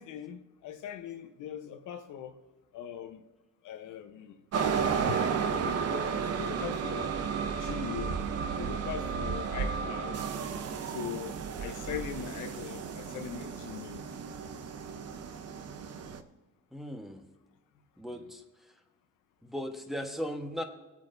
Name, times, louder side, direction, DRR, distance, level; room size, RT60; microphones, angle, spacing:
voice 1, 0.0-2.4 2.7-3.2 3.6-4.4 5.0-7.1 7.6-8.2 8.6-10.2 10.8-14.0, left 9 dB, 80° left, 1.0 m, -41 dB
sound 1, 4.5-16.2, right 6 dB, 55° right, 0.9 m, -33 dB
voice 2, 16.7-17.2 18.0-18.4 19.4-20.6, equal, ahead, 1.3 m, -37 dB
19.5 x 8.4 x 2.7 m
cardioid pair, 90°, 30 cm